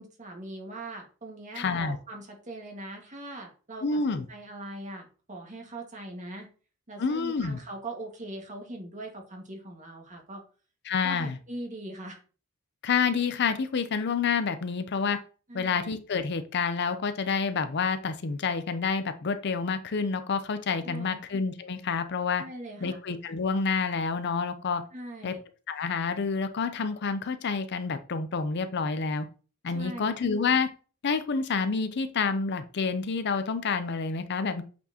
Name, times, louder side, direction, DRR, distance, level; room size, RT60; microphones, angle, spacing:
voice 1, 0.0-6.5 6.9-10.4 11.0-12.2 15.5-15.8 20.8-21.2 22.4-23.0 24.9-25.4 29.7-30.2, right 1 dB, 35° right, 1 dB, 1.8 m, -41 dB
voice 2, 1.5-2.0 3.8-4.3 7.0-7.6 10.9-11.4 12.8-15.2 15.5-22.4 22.8-24.8 25.2-25.3 25.7-29.3 29.6-30.7 31.0-34.6, left 5 dB, 55° left, 10 dB, 0.6 m, -28 dB
8.2 x 4.4 x 2.9 m, 0.38 s
head